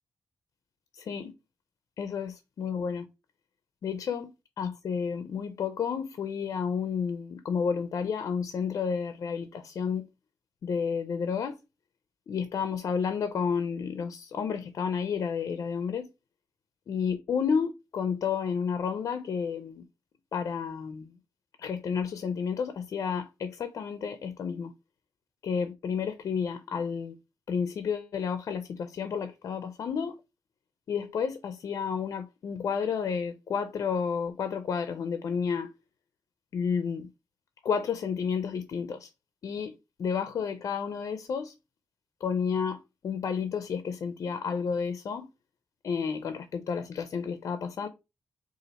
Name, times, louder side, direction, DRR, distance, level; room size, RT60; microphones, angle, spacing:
voice 1, 0.9-1.3 2.0-3.1 3.8-4.3 4.6-10.1 10.6-11.6 12.3-16.1 16.9-19.8 20.3-21.1 21.6-24.7 25.4-27.2 27.5-30.2 30.9-35.7 36.5-37.1 37.6-39.1 39.4-41.5 42.2-45.3 45.8-47.9, left 6 dB, 65° left, 0.4 m, -31 dB
4.0 x 2.5 x 4.1 m
wide cardioid pair, 125°, 6 cm